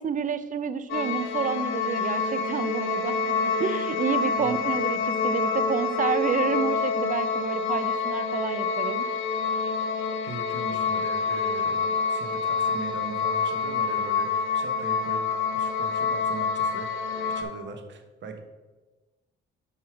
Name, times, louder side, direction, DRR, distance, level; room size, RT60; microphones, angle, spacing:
voice 1, 0.0-9.0, right 6 dB, 40° right, 13 dB, 0.5 m, -29 dB
sound 1, 0.9-17.4, left 5 dB, 80° left, 0.9 m, -27 dB
voice 2, 10.2-15.2 15.5-16.9 17.1-18.4, right 5 dB, 65° right, 6 dB, 1.0 m, -40 dB
5.5 x 4.7 x 5.8 m, 1.2 s
cardioid pair, 90°, 20 cm